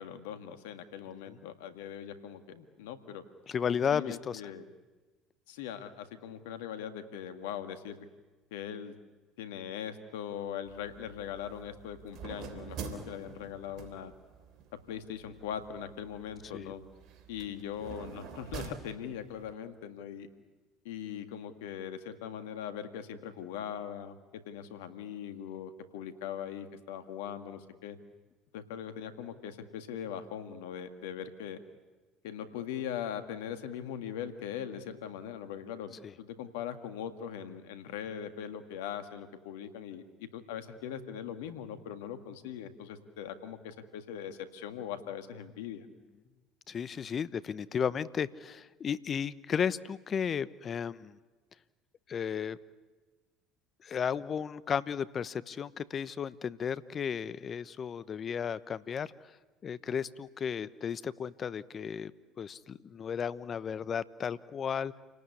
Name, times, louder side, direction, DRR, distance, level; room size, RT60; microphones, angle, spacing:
voice 1, 0.0-3.2 3.9-4.7 5.5-8.1 8.5-9.0 9.4-14.1 14.7-16.8 17.3-20.3 20.8-28.0 28.5-31.6 32.2-45.9, left 9 dB, 80° left, 9 dB, 1.9 m, -41 dB
voice 2, 3.5-4.4 16.5-16.7 36.0-36.1 46.7-51.2 52.1-52.6 53.8-59.1 59.6-62.1 62.4-64.9, left 7 dB, 40° left, 17 dB, 1.0 m, -34 dB
sound 1, 10.6-19.5, right 6 dB, 60° right, 3.5 m, -47 dB
29.0 x 18.5 x 9.8 m, 1.3 s
hypercardioid pair, 70°, 0 cm